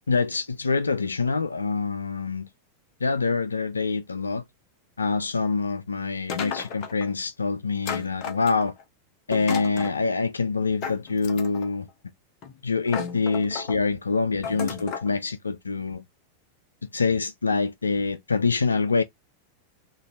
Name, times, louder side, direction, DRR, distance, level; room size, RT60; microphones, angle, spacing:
voice 1, 0.1-2.5 3.0-4.4 5.0-8.7 9.3-11.9 12.6-16.0 16.9-19.0, left 4 dB, 75° left, 0.3 m, -25 dB
sound 1, 6.3-7.1 7.9-8.8 9.3-10.0 10.8-11.7 12.4-12.5 12.9-13.8 14.4-15.1, left 7 dB, 40° left, 0.6 m, -33 dB
3.0 x 2.5 x 2.6 m
figure-of-eight pair, 90°, 0 cm